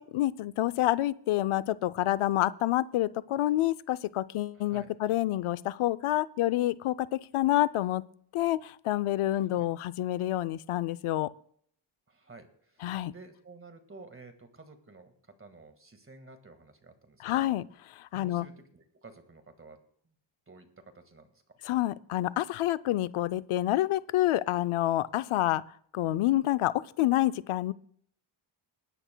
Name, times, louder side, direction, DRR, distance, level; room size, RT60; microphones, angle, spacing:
voice 1, 0.0-8.0 8.3-11.3 12.8-13.1 17.2-17.6 18.1-18.5 21.7-25.6 25.9-27.7, left 15 dB, 90° left, 15 dB, 0.6 m, -28 dB
voice 2, 4.5-4.9 9.3-9.7 12.1-17.6 18.1-20.1 20.5-21.6, right 3 dB, 25° right, 7 dB, 1.7 m, -52 dB
19.5 x 12.0 x 2.2 m, 0.62 s
wide cardioid pair, 100°, 49 cm